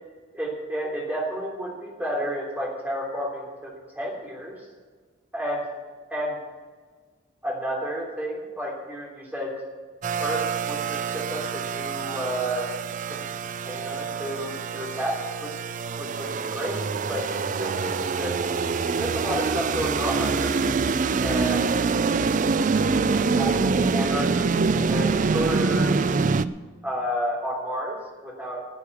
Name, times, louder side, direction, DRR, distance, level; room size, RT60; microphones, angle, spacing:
voice 1, 0.3-4.6 5.3-5.7 6.1-6.4 7.4-9.6 10.1-12.7 13.1-13.2 13.6-15.6 16.0-18.4 19.0-20.6 21.2-21.7 23.1-26.0 26.8-28.7, equal, 10° right, -2 dB, 3.2 m, -31 dB
sound 1, 10.0-26.5, right 4 dB, 40° right, 0.4 m, -25 dB
12.0 x 8.6 x 8.4 m, 1.5 s
head